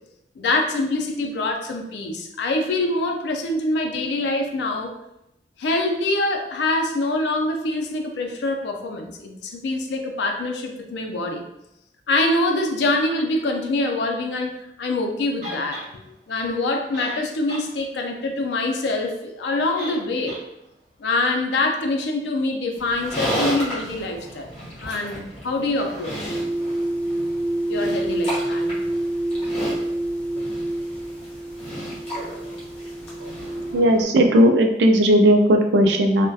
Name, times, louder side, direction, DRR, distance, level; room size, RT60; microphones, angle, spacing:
voice 1, 0.4-4.9 5.6-11.4 12.1-15.8 16.3-20.4 21.0-24.5 24.8-26.4 27.7-28.8, left 2 dB, 80° left, 4 dB, 0.4 m, -25 dB
sound 1, 15.4-15.9 16.7-16.8 16.9-17.7 18.0-18.1 19.7-20.0 20.3-20.4, left 1 dB, 45° right, 0.6 m, -35 dB
Livestock farm animals working animals, 22.8-34.0, equal, 35° left, 0.8 m, -33 dB
sound 2, 26.2-33.7, right 1 dB, 5° left, 0.4 m, -27 dB
voice 2, 33.7-36.3, equal, 75° right, 4 dB, 0.3 m, -16 dB
2.2 x 2.1 x 2.6 m, 0.84 s
head